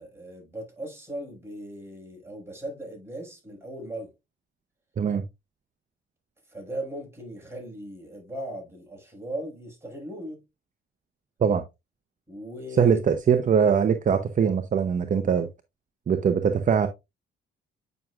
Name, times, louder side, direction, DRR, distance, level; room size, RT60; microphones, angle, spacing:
voice 1, 0.0-4.1 6.5-10.4 12.3-13.0, right 1 dB, 10° right, 5.5 m, -38 dB
voice 2, 12.8-15.5 16.1-16.9, right 7 dB, 40° right, 0.8 m, -22 dB
9.1 x 6.1 x 2.4 m
cardioid pair, 90°, 20 cm